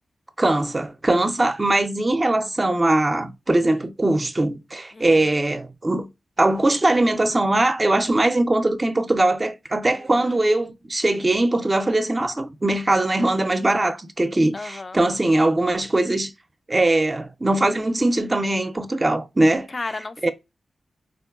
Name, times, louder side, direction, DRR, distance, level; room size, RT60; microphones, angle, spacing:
voice 1, 0.4-6.1 6.4-16.3 16.7-19.7 20.2-20.3, right 2 dB, 30° right, 0.4 m, -21 dB
voice 2, 4.9-5.3 9.9-10.4 14.5-15.0 19.7-20.3, left 3 dB, 45° left, 0.3 m, -34 dB
3.6 x 2.2 x 2.3 m
cardioid pair, 55°, 0 cm